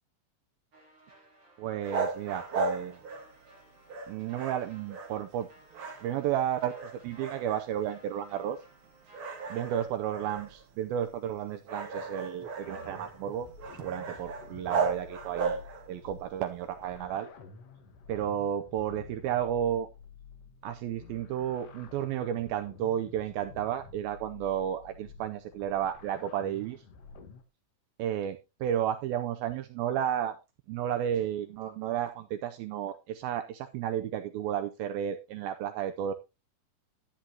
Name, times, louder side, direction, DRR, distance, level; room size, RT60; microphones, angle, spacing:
sound 1, 0.7-9.9, right 1 dB, 30° right, 4.6 m, -59 dB
voice 1, 1.6-3.0 4.1-5.5 6.0-8.6 9.5-15.6 15.9-17.3 18.1-19.9 20.6-26.8 28.0-30.4 30.7-36.1, right 10 dB, 80° right, 2.2 m, -32 dB
sound 2, 1.8-3.6 3.9-5.4 5.7-6.4 6.7-7.9 8.4-8.5 9.1-16.0, right 5 dB, 60° right, 1.4 m, -36 dB
sound 3, 12.6-27.4, left 4 dB, 65° left, 1.5 m, -51 dB
11.5 x 10.0 x 2.8 m
omnidirectional pair, 4.8 m